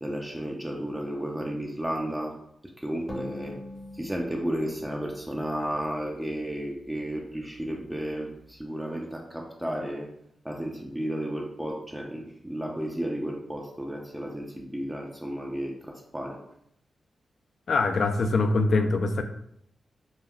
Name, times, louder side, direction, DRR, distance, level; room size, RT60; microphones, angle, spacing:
voice 1, 0.0-2.4 2.8-3.6 3.9-10.1 10.4-16.4, right 1 dB, 10° right, 0 dB, 0.4 m, -33 dB
sound 1, 3.1-6.6, left 1 dB, 40° left, 0.7 m, -43 dB
voice 2, 17.7-19.2, left 3 dB, 65° left, 7 dB, 0.3 m, -23 dB
3.4 x 2.3 x 2.3 m, 0.72 s
cardioid pair, 75°, 0 cm